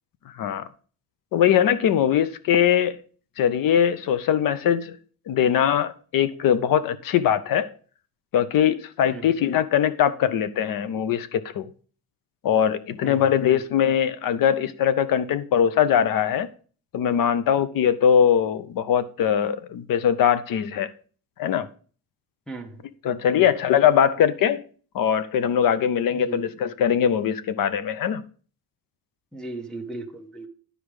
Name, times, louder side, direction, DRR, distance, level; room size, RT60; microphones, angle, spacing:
voice 1, 0.3-0.7 1.3-3.0 3.4-5.0 5.3-7.7 8.3-11.7 12.4-16.5 16.9-20.9 21.4-21.7 23.0-24.6 24.9-28.2, left 9 dB, 60° left, 0.7 m, -21 dB
voice 2, 9.1-9.4 13.0-13.6 22.5-22.8 23.3-23.5 26.1-26.6 29.3-30.5, right 2 dB, ahead, 0.9 m, -37 dB
10.0 x 4.9 x 4.8 m
cardioid pair, 145°, 38 cm